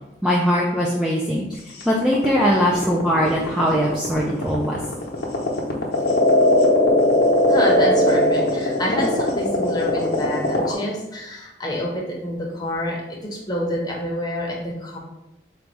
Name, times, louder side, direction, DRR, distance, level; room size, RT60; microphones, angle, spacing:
voice 1, 0.2-1.5 1.9-4.8, equal, 5° right, -5 dB, 0.3 m, -20 dB
sound 1, 1.8-10.7, left 1 dB, 50° left, 0.9 m, -19 dB
voice 2, 7.5-15.0, left 1 dB, 20° left, -2 dB, 0.8 m, -27 dB
4.0 x 2.3 x 4.6 m, 0.95 s
head